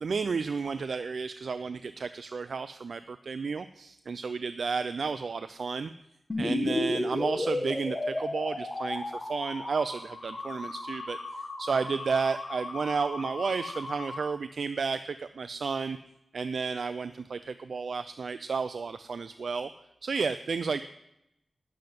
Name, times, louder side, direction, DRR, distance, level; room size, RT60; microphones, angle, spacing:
voice 1, 0.0-5.9 6.4-11.2 11.6-16.0 16.3-19.7 20.0-20.8, right 5 dB, 75° right, 12 dB, 0.3 m, -32 dB
sound 1, 6.3-14.2, left 2 dB, 40° left, 1.6 m, -34 dB
10.5 x 7.6 x 5.2 m, 0.82 s
cardioid pair, 65°, 0 cm